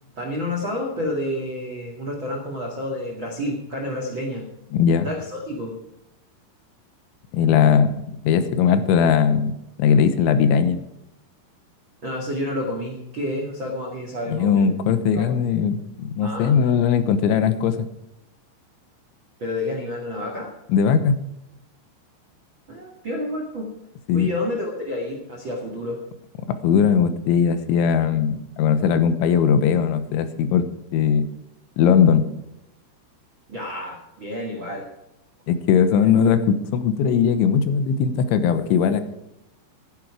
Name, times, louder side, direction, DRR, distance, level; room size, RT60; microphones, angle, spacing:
voice 1, 0.2-4.5 5.0-5.7 12.0-14.7 15.1-15.3 16.2-16.5 19.4-20.5 22.7-23.7 24.1-26.0 33.5-34.9, left 1 dB, 55° right, 0 dB, 1.3 m, -29 dB
voice 2, 4.7-5.1 7.3-10.8 14.3-17.9 20.7-21.2 24.1-24.3 26.6-30.7 30.9-31.3 31.8-32.3 35.5-39.0, left 7 dB, 75° left, 11 dB, 3.2 m, -19 dB
15.5 x 11.0 x 4.8 m, 0.85 s
omnidirectional pair, 5.8 m